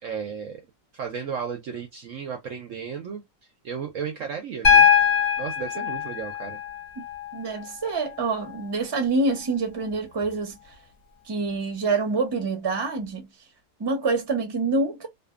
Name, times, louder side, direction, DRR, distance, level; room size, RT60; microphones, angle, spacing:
voice 1, 0.0-0.6 0.9-3.2 3.6-4.9 5.4-6.6, right 6 dB, 65° right, 0.8 m, -34 dB
Piano, 4.6-8.6 10.2-10.3, left 7 dB, 45° left, 0.8 m, -22 dB
voice 2, 7.3-10.6 11.3-13.3 13.8-15.1, right 3 dB, 25° right, 0.5 m, -26 dB
2.6 x 2.5 x 2.3 m
omnidirectional pair, 1.8 m